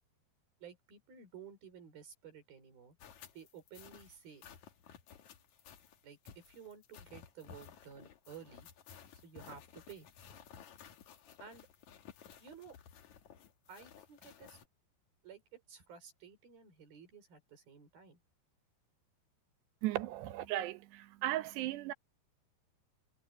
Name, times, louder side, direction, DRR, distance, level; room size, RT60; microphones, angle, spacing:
voice 1, 0.6-3.0 3.3-4.4 6.0-6.2 6.5-8.7 9.2-10.1 11.4-11.7 12.4-12.7 13.7-14.6 15.2-18.2, right 7 dB, 65° right, 7.0 m, -53 dB
sound 1, 3.0-14.7, left 8 dB, 55° left, 2.5 m, -56 dB
voice 2, 19.8-21.9, right 15 dB, 85° right, 3.1 m, -36 dB
omnidirectional pair, 4.7 m